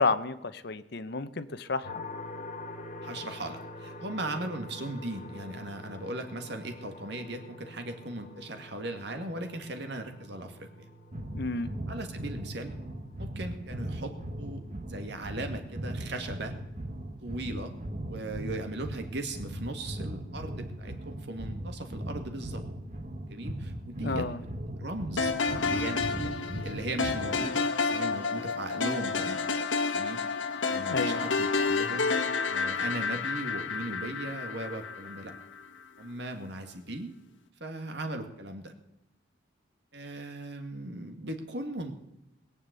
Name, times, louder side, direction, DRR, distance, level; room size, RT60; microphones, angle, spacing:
voice 1, 0.0-1.9 11.3-11.7 24.0-24.4 30.9-31.2, left 3 dB, 60° left, 13 dB, 0.9 m, -30 dB
sound 1, 1.8-16.6, left 2 dB, 40° left, 2.0 m, -47 dB
voice 2, 3.0-10.9 11.9-12.7 13.2-16.5 17.2-17.7 18.1-22.6 23.3-24.3 24.8-29.4 29.9-30.2 30.7-35.3 36.0-37.1 37.6-38.7 39.9-41.9, right 1 dB, 65° right, 6 dB, 2.1 m, -38 dB
sound 2, 11.1-27.5, right 1 dB, 40° right, 1.2 m, -39 dB
sound 3, 25.2-35.4, left 4 dB, 80° left, 1.4 m, -30 dB
20.5 x 7.3 x 8.3 m, 0.88 s
head